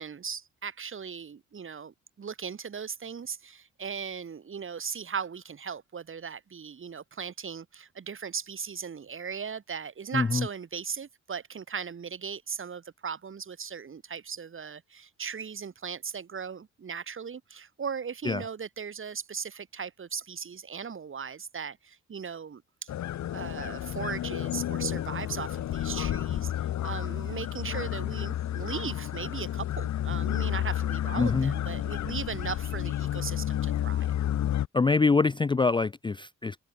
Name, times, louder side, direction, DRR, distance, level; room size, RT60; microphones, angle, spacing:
voice 1, 0.0-22.9 23.3-34.1, right 6 dB, 45° right, 4.7 m, -38 dB
voice 2, 10.1-10.5 18.2-18.4 31.2-31.5 34.7-36.6, left 4 dB, 15° left, 0.5 m, -24 dB
sound 1, 22.9-34.7, left 12 dB, 65° left, 1.6 m, -31 dB
cardioid pair, 90°, 30 cm